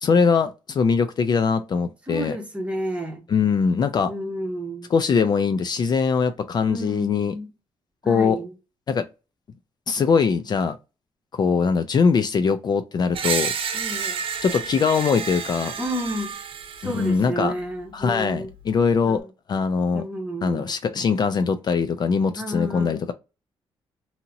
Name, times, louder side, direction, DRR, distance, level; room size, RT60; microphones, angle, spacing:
voice 1, 0.0-2.3 3.3-4.1 4.9-7.3 8.1-8.4 8.9-9.0 9.9-10.8 11.3-13.5 14.4-15.7 16.8-17.5 17.9-19.2 19.5-20.0 20.4-23.1, left 5 dB, 45° left, 0.4 m, -21 dB
voice 2, 2.1-3.2 4.1-4.9 6.7-7.5 8.0-8.5 13.7-14.2 15.8-16.3 16.8-18.5 19.0-19.2 19.9-20.7 22.4-23.1, equal, 10° right, 1.1 m, -31 dB
Screech, 13.1-17.1, right 6 dB, 65° right, 0.7 m, -30 dB
2.8 x 2.8 x 2.6 m
cardioid pair, 105°, 10 cm